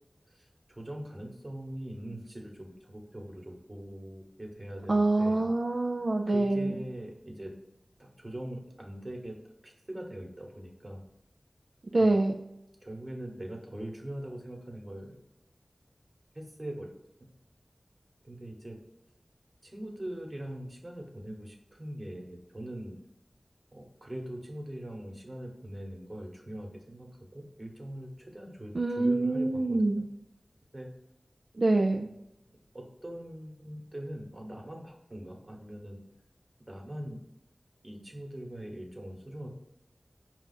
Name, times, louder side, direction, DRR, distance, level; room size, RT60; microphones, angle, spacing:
voice 1, 0.3-5.5 6.3-7.5 8.0-9.4 9.6-11.0 12.0-12.2 12.8-15.2 16.3-16.9 18.2-18.8 19.6-22.9 23.7-30.0 30.7-30.9 31.9-32.1 32.5-36.0 36.6-37.2 37.8-39.5, right 1 dB, 40° right, 0 dB, 1.2 m, -42 dB
voice 2, 4.9-6.7 11.9-12.4 28.7-30.0 31.6-32.1, right 2 dB, 65° right, 2 dB, 0.3 m, -25 dB
5.4 x 2.4 x 4.0 m, 0.87 s
wide cardioid pair, 40°, 0 cm